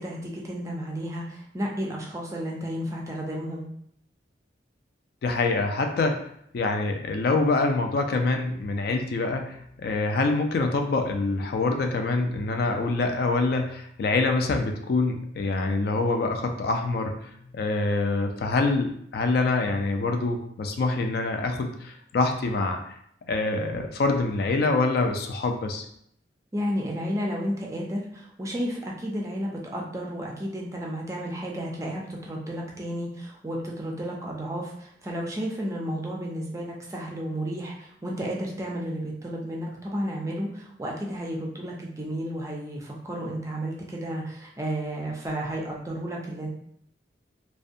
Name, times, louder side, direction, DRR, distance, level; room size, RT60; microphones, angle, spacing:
voice 1, 0.0-3.7 26.5-46.5, equal, 15° right, -2 dB, 0.4 m, -32 dB
voice 2, 5.2-6.2 6.5-17.1 17.5-22.8 23.3-25.8, left 3 dB, 60° left, 4 dB, 0.3 m, -25 dB
2.5 x 2.2 x 2.5 m, 0.70 s
head